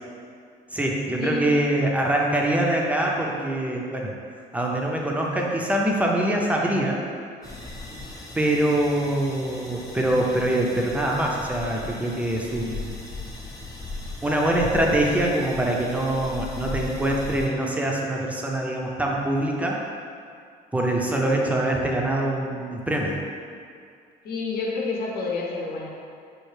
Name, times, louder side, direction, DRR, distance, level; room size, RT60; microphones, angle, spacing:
voice 1, 0.7-4.1 4.5-7.0 8.3-12.9 14.2-19.8 20.7-23.2, right 1 dB, 10° right, -1 dB, 0.5 m, -24 dB
sound 1, 7.4-17.5, left 3 dB, 20° left, 0.8 m, -38 dB
voice 2, 24.2-25.9, left 3 dB, 65° left, -2 dB, 0.7 m, -29 dB
4.5 x 2.4 x 3.2 m, 2.3 s
cardioid pair, 110°, 17 cm